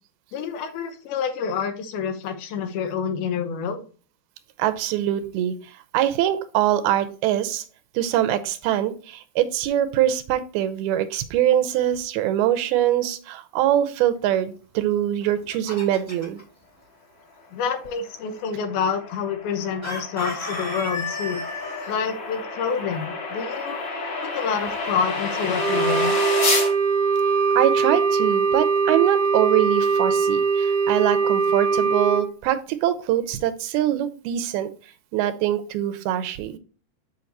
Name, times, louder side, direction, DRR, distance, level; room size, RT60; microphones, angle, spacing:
voice 1, 0.3-3.8 17.5-21.4 21.9-23.8 24.2-26.2, left 6 dB, 80° left, 7 dB, 2.8 m, -28 dB
voice 2, 4.6-5.5 5.9-7.6 8.0-16.4 27.6-34.7 35.1-36.5, right 12 dB, 85° right, 12 dB, 2.6 m, -23 dB
Chicken rooster, 15.2-16.4 19.8-22.0, left 2 dB, 5° left, 1.2 m, -32 dB
sound 1, 18.0-26.7, left 3 dB, 40° left, 3.2 m, -30 dB
Wind instrument woodwind instrument, 25.6-32.3, right 5 dB, 65° right, 1.3 m, -21 dB
7.7 x 5.7 x 2.8 m, 0.38 s
omnidirectional pair, 4.5 m